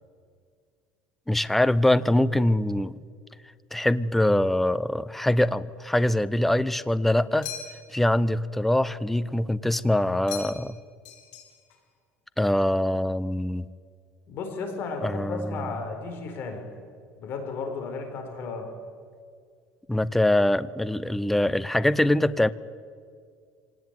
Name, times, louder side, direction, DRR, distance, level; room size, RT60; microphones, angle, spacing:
voice 1, 1.3-2.9 3.7-7.5 7.9-10.7 12.4-13.7 15.0-15.7 19.9-22.5, left 1 dB, 5° left, 17 dB, 0.6 m, -23 dB
sound 1, 7.4-8.0 10.3-10.8 11.0-11.8, left 9 dB, 90° left, 5.5 m, -39 dB
voice 2, 14.3-16.6 17.2-18.7, left 4 dB, 45° left, 5 dB, 4.4 m, -34 dB
26.0 x 18.5 x 9.4 m, 2.1 s
cardioid pair, 150°, 5 cm